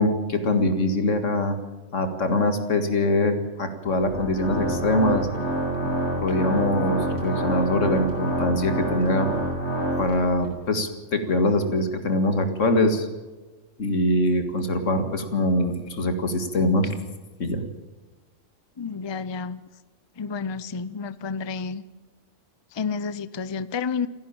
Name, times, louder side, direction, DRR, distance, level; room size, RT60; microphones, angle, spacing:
voice 1, 0.0-1.6 1.9-5.3 5.8-5.9 6.2-9.3 10.0-13.1 13.8-16.9 17.4-17.6, left 1 dB, 80° left, 8 dB, 2.3 m, -23 dB
Organ, 3.9-10.5, right 1 dB, 65° left, 6.0 m, -27 dB
voice 2, 18.8-19.7 20.2-21.8 22.7-24.1, left 5 dB, 30° left, 16 dB, 0.5 m, -30 dB
28.5 x 10.5 x 8.8 m, 1.2 s
omnidirectional pair, 1.3 m